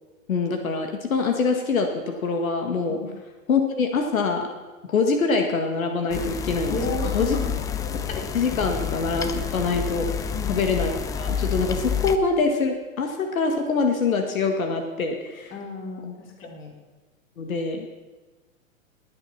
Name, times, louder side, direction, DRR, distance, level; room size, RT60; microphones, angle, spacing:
voice 1, 0.3-3.0 3.5-4.5 4.9-6.8 7.1-7.4 8.1-15.5 16.4-16.5 17.4-17.9, left 4 dB, 75° left, 4 dB, 1.9 m, -24 dB
sound 1, 6.1-12.2, left 7 dB, 10° left, 0.4 m, -29 dB
voice 2, 6.7-7.5 10.3-10.6 15.5-16.1 16.4-16.7, left 2 dB, 30° left, 1 dB, 3.6 m, -32 dB
20.5 x 8.2 x 5.8 m, 1.3 s
hypercardioid pair, 115°, 41 cm